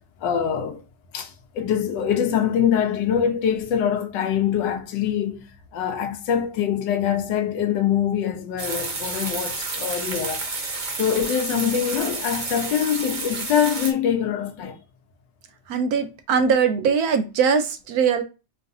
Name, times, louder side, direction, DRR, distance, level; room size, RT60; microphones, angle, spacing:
voice 1, 0.2-0.8 1.1-5.5 5.7-10.4 11.0-14.8, left 8 dB, 90° left, 1.4 m, -24 dB
sound 1, 8.6-13.9, right 3 dB, 40° right, 0.7 m, -30 dB
voice 2, 15.7-18.2, right 6 dB, 70° right, 1.0 m, -21 dB
4.6 x 3.3 x 2.6 m
omnidirectional pair, 1.9 m